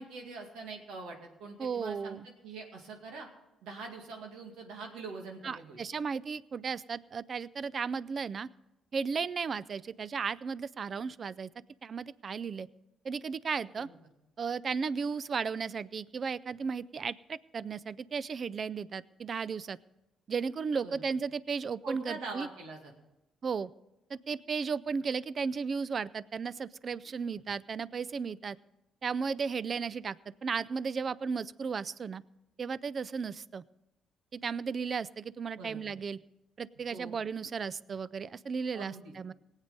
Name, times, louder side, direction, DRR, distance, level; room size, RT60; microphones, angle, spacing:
voice 1, 0.0-3.3 3.6-5.8 13.8-14.0 20.8-21.0 21.8-22.9 35.5-35.9 36.9-37.1 38.7-39.1, right 3 dB, 90° right, 2 dB, 2.2 m, -43 dB
voice 2, 1.6-2.3 5.4-8.5 8.9-11.5 11.8-12.7 13.0-13.9 14.4-19.8 20.3-22.5 23.4-23.7 24.1-28.6 29.0-30.2 30.4-32.2 32.6-33.6 34.3-36.2 36.6-39.3, right 5 dB, 45° right, 20 dB, 0.4 m, -35 dB
18.5 x 8.1 x 5.3 m, 0.93 s
cardioid pair, 90°, 0 cm